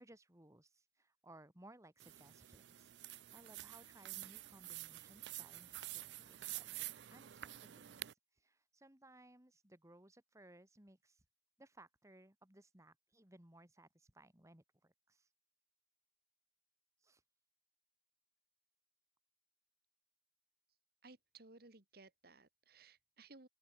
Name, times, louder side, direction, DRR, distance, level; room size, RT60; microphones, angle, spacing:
voice 1, 0.0-11.2 11.6-15.3 17.0-17.2, right 1 dB, 20° right, 2.4 m, -63 dB
sound 1, 2.0-8.1, right 15 dB, 80° right, 0.5 m, -49 dB
voice 2, 21.0-23.5, right 3 dB, 60° right, 2.2 m, -60 dB
open air
head